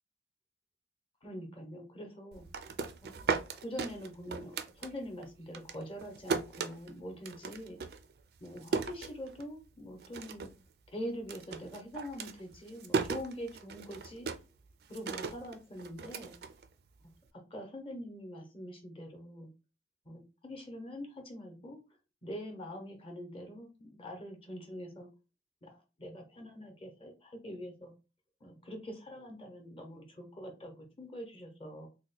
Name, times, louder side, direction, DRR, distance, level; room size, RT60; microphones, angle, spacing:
voice 1, 1.2-2.4 3.0-3.1 3.6-7.8 8.4-10.5 10.9-14.3 14.9-16.3 17.5-19.5 20.0-21.8 22.2-25.1 25.6-27.9 28.4-31.9, equal, 30° left, 3 dB, 0.7 m, -44 dB
sound 1, 2.3-5.3 5.5-9.7 10.0-10.6 10.9-17.1, right 5 dB, 60° right, 0.4 m, -37 dB
2.9 x 2.1 x 4.0 m, 0.30 s
head